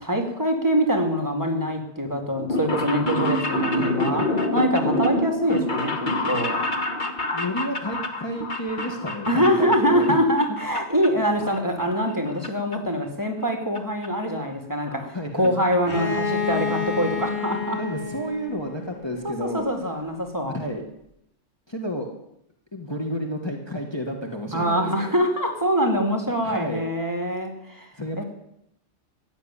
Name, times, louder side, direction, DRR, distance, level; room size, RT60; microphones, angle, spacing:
voice 1, 0.0-4.3 4.5-6.6 9.3-17.8 19.2-20.6 24.5-27.9 28.2-28.3, equal, 15° right, 3 dB, 2.3 m, -24 dB
sound 1, 2.4-10.1 10.4-11.1 11.4-12.5 12.7-12.8 13.8-13.9 14.0-14.1 14.4-14.5 14.8-15.1 15.4-15.5 15.7-15.8, left 1 dB, 40° left, 1.5 m, -27 dB
voice 2, 3.7-4.3 7.3-10.2 15.1-15.6 17.8-19.7 20.5-20.8 21.7-22.1 22.7-25.1 26.4-26.8 27.9-28.2, equal, 20° left, 1 dB, 1.6 m, -31 dB
Bowed string instrument, 15.8-19.5, left 5 dB, 60° left, 2.8 m, -29 dB
15.0 x 7.6 x 9.9 m, 0.80 s
omnidirectional pair, 1.3 m